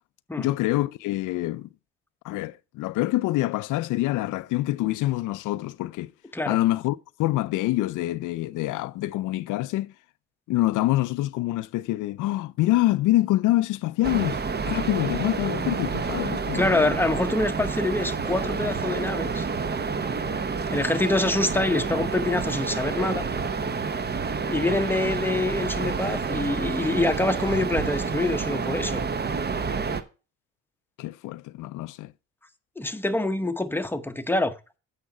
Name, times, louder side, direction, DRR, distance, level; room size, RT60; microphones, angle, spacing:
voice 1, 0.4-1.7 2.2-6.1 6.5-9.9 10.5-17.0 24.2-24.3 31.0-32.1, left 16 dB, 85° left, 0.5 m, -26 dB
sound 1, 14.0-30.0, right 5 dB, 35° right, 0.9 m, -29 dB
voice 2, 16.5-19.4 20.7-23.3 24.5-29.1 32.8-34.5, left 2 dB, 5° left, 0.8 m, -25 dB
8.6 x 5.8 x 5.0 m
cardioid pair, 90°, 30 cm